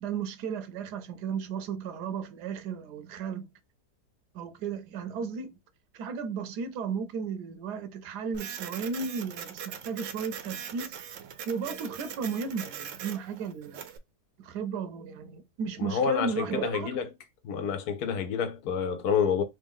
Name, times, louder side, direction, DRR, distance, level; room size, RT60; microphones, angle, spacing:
voice 1, 0.0-3.5 4.3-5.5 5.9-11.0 11.5-13.8 14.4-17.0, right 6 dB, 85° right, 1.2 m, -34 dB
Printer, 8.3-14.0, right 8 dB, 65° right, 0.8 m, -41 dB
voice 2, 15.8-17.0 17.4-19.4, left 7 dB, 75° left, 1.2 m, -28 dB
3.4 x 2.6 x 3.5 m
omnidirectional pair, 1.7 m